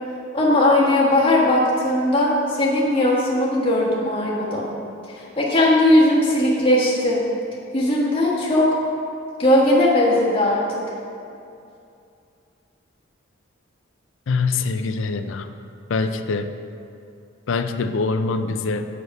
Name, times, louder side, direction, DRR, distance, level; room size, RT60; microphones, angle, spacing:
voice 1, 0.3-4.7 5.1-7.2 7.7-8.7 9.4-10.8, left 1 dB, 25° left, -5 dB, 1.3 m, -18 dB
voice 2, 14.3-15.5 15.9-16.5 17.5-18.9, left 4 dB, 75° left, 9 dB, 0.4 m, -24 dB
8.0 x 4.8 x 5.2 m, 2.6 s
head